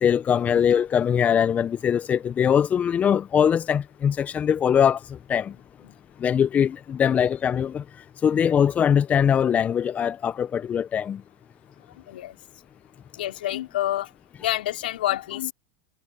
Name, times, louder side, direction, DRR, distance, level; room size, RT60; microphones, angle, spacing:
voice 1, 0.0-5.5 6.2-7.8 8.2-11.2, left 8 dB, 30° left, 0.9 m, -22 dB
voice 2, 12.1-12.4 13.1-14.1 14.4-15.5, left 13 dB, 75° left, 3.5 m, -27 dB
hypercardioid pair, 95°, 5 cm